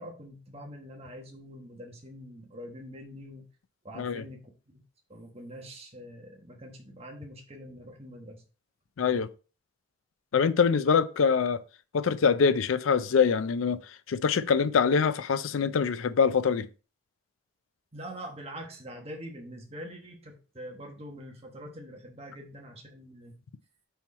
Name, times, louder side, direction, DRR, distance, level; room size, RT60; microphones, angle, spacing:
voice 1, 0.0-3.5 3.8-4.5 5.1-8.4 17.9-23.4, equal, 30° right, 1.2 m, -44 dB
voice 2, 9.0-9.3 10.3-11.6 11.9-13.8 14.1-16.7, left 6 dB, 90° left, 0.4 m, -24 dB
5.6 x 4.4 x 4.2 m
head